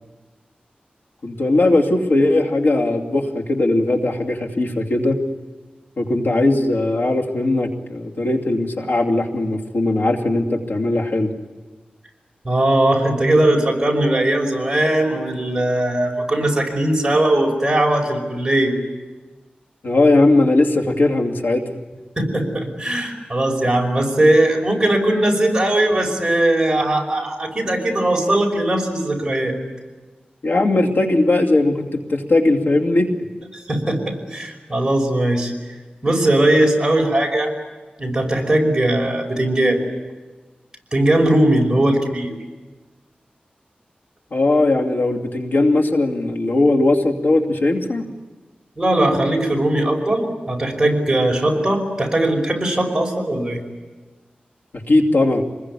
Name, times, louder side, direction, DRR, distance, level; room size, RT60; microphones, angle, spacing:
voice 1, 1.2-5.2 6.0-11.3 19.8-21.6 30.4-33.1 44.3-48.1 54.9-55.4, left 2 dB, 90° left, 1 dB, 2.6 m, -18 dB
voice 2, 12.4-18.8 22.2-29.6 33.5-35.5 36.0-37.5 38.0-39.8 40.9-42.3 48.8-53.6, right 1 dB, 20° right, 1 dB, 5.6 m, -19 dB
26.5 x 21.0 x 9.9 m, 1.3 s
wide cardioid pair, 110°, 3 cm